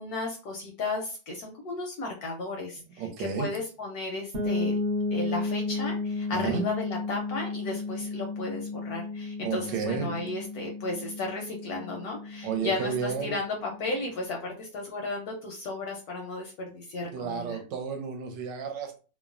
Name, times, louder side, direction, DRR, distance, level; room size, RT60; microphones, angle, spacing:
voice 1, 0.0-4.8 5.1-17.6, left 2 dB, 75° left, 1 dB, 0.9 m, -34 dB
voice 2, 3.0-3.5 6.3-6.6 9.4-10.1 12.4-13.3 17.1-19.0, right 6 dB, 80° right, 5 dB, 1.2 m, -32 dB
sound 1, 4.3-14.0, left 3 dB, 50° right, 0.8 m, -33 dB
3.0 x 2.0 x 2.4 m, 0.35 s
omnidirectional pair, 2.0 m